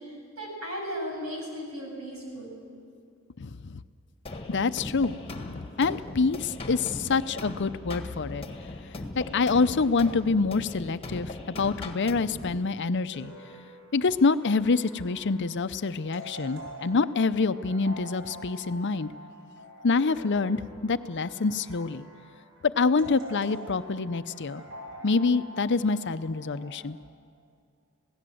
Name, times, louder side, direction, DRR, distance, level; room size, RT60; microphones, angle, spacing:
voice 1, 0.0-2.6, equal, 90° right, -1 dB, 7.9 m, -36 dB
voice 2, 3.4-3.8 4.5-8.4 9.2-13.3 13.9-19.1 19.8-22.1 22.6-24.6 25.0-27.0, left 4 dB, 55° left, 13 dB, 0.7 m, -26 dB
sound 1, 4.3-12.6, left 2 dB, 25° left, 1.6 m, -39 dB
sound 2, 7.8-10.3, left 2 dB, 25° right, 5.4 m, -46 dB
sound 3, 13.1-26.8, equal, 60° right, 6.3 m, -46 dB
27.5 x 17.0 x 7.8 m, 2.3 s
head